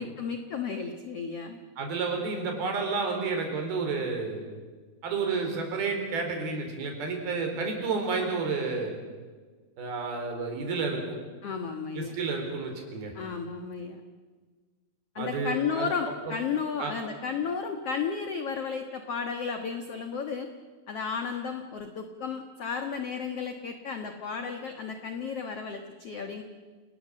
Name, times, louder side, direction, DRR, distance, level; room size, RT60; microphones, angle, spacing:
voice 1, 0.0-1.6 11.4-12.2 13.1-14.0 15.2-20.5 20.9-26.4, left 6 dB, 55° left, 6 dB, 1.8 m, -33 dB
voice 2, 1.8-4.6 5.0-8.9 9.8-11.2 12.0-13.1 15.2-15.9 16.8-16.9, right 4 dB, 75° right, 3 dB, 6.1 m, -30 dB
28.5 x 20.0 x 7.6 m, 1.4 s
omnidirectional pair, 4.4 m